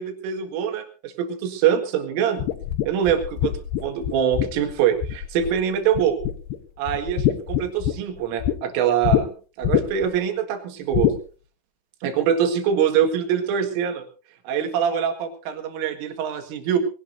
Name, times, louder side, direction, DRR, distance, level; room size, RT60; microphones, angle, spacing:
voice 1, 0.0-2.5 2.9-3.5 3.8-6.2 6.8-11.1 12.0-14.1 14.5-16.8, right 8 dB, 80° right, 6 dB, 4.3 m, -24 dB
sound 1, 2.4-5.6 5.9-6.6 6.9-8.6 9.0-9.2 9.6-10.1 10.9-11.2, left 12 dB, 75° left, 2.6 m, -24 dB
21.0 x 17.5 x 2.7 m, 0.36 s
omnidirectional pair, 5.7 m